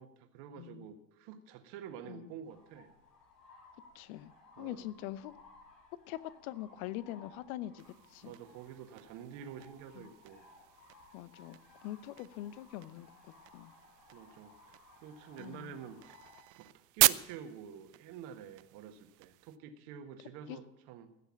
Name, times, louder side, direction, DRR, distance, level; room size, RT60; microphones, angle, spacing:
voice 1, 0.0-2.9 4.6-4.9 8.2-10.4 14.1-16.0 16.6-21.1, right 8 dB, 60° right, 7 dB, 1.7 m, -48 dB
voice 2, 0.6-0.9 2.1-2.3 3.9-4.3 4.6-5.3 6.1-8.3 9.9-10.1 11.1-13.1 13.5-13.7 15.4-15.8 20.5-20.6, left 14 dB, 65° left, 17 dB, 0.9 m, -43 dB
sound 1, 2.5-16.4, left 3 dB, 85° left, 4.0 m, -60 dB
sound 2, 7.8-19.6, right 20 dB, 45° right, 0.5 m, -38 dB
15.5 x 6.8 x 7.4 m, 0.83 s
hypercardioid pair, 80°, 47 cm